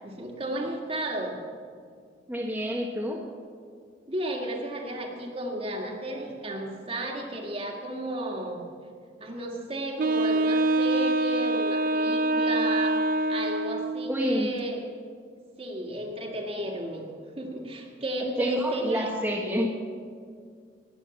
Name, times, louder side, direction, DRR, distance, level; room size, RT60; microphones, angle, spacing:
voice 1, 0.0-1.4 4.1-8.6 9.2-13.0 13.3-14.8 15.6-17.1 17.4-19.1, right 1 dB, 35° right, 1 dB, 2.0 m, -33 dB
voice 2, 2.3-3.2 14.1-14.5 18.4-19.7, equal, 10° right, -3 dB, 1.3 m, -28 dB
Wind instrument woodwind instrument, 10.0-14.1, right 2 dB, 50° right, 0.5 m, -25 dB
19.5 x 8.0 x 7.2 m, 2.1 s
head